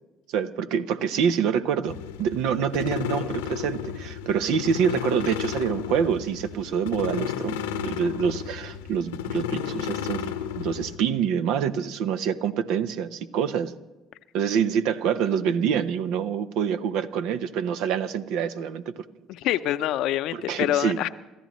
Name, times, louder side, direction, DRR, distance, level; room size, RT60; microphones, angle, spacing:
voice 1, 0.3-13.7 14.3-18.9 20.3-21.1, right 7 dB, 70° right, 12 dB, 0.7 m, -26 dB
sound 1, 1.9-11.0, left 9 dB, 90° left, 1.0 m, -33 dB
voice 2, 19.3-21.1, left 13 dB, 65° left, 13 dB, 0.6 m, -26 dB
27.5 x 13.5 x 3.1 m, 1.1 s
hypercardioid pair, 65°, 0 cm